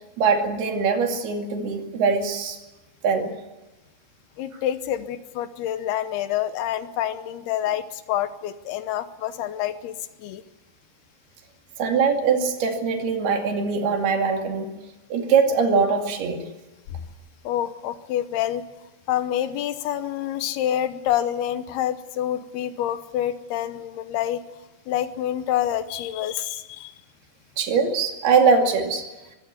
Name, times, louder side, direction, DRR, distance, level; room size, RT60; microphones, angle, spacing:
voice 1, 0.2-2.6 3.0-3.3 11.8-14.7 15.1-16.4 27.6-29.1, right 5 dB, 75° right, 4 dB, 4.3 m, -22 dB
voice 2, 4.4-10.4 17.4-18.6 19.1-24.4 24.9-26.9, left 11 dB, 80° left, 12 dB, 2.9 m, -27 dB
23.0 x 16.0 x 9.5 m, 1.1 s
omnidirectional pair, 4.7 m